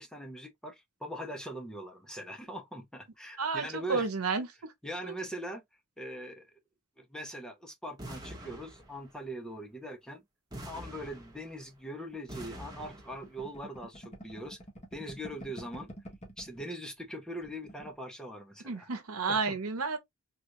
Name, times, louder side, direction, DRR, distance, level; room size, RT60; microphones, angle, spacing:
voice 1, 0.0-4.1 4.8-5.6 6.0-6.5 7.0-10.2 10.6-14.6 14.9-15.9 16.4-18.9 19.3-19.6, equal, 5° left, 0.7 m, -41 dB
voice 2, 3.4-4.5 5.0-5.1 18.6-20.0, right 4 dB, 90° right, 0.9 m, -31 dB
sound 1, 8.0-9.3 10.5-11.8 12.3-13.4, right 1 dB, 20° right, 1.1 m, -45 dB
sound 2, 12.1-16.7 17.0-17.1 17.4-18.0, right 1 dB, 30° left, 1.3 m, -48 dB
3.8 x 2.4 x 2.9 m
head